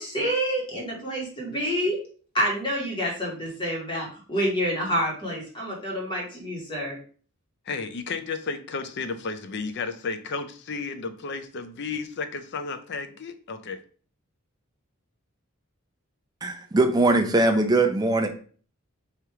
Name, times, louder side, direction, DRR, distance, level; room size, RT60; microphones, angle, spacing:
voice 1, 0.0-2.0 2.3-7.0, equal, 20° left, -3 dB, 1.5 m, -28 dB
voice 2, 7.7-13.8, left 4 dB, 50° left, 9 dB, 0.5 m, -33 dB
voice 3, 16.4-18.3, right 2 dB, 20° right, 5 dB, 0.5 m, -21 dB
3.3 x 2.9 x 4.6 m, 0.43 s
head